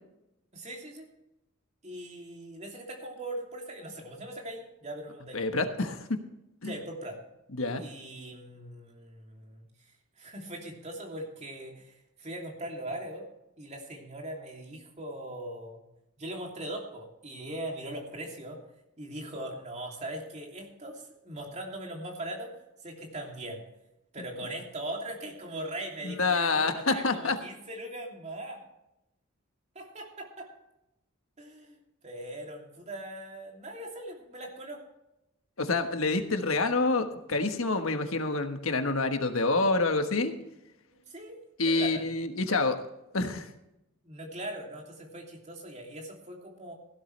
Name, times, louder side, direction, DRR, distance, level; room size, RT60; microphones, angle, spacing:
voice 1, 0.5-1.1 1.8-5.5 6.6-7.2 7.8-9.7 10.2-11.9 12.2-13.3 13.6-15.8 16.2-18.6 19.0-22.5 22.8-23.6 24.1-28.6 29.7-30.5 31.4-31.8 32.0-34.8 40.9-41.4 41.7-42.0 44.0-46.7, right 1 dB, 35° right, 0 dB, 2.9 m, -40 dB
voice 2, 5.3-6.1 6.6-6.7 7.5-7.8 26.0-27.4 35.6-40.3 41.6-42.9 43.1-43.5, left 3 dB, 75° left, 6 dB, 1.4 m, -27 dB
16.0 x 12.0 x 3.3 m, 0.88 s
head